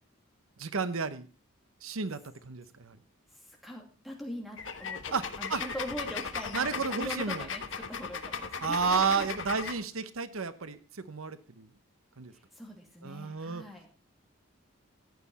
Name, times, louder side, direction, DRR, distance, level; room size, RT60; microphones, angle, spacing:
voice 1, 0.6-1.3 1.8-3.0 5.1-5.6 6.5-7.5 8.6-11.7 12.2-12.3 13.0-13.6, right 5 dB, 90° right, 13 dB, 0.9 m, -32 dB
voice 2, 3.3-9.3 12.3-13.9, equal, ahead, 1 dB, 2.6 m, -42 dB
sound 1, 4.6-9.8, left 5 dB, 65° left, 1.2 m, -37 dB
14.5 x 9.5 x 4.2 m, 0.34 s
head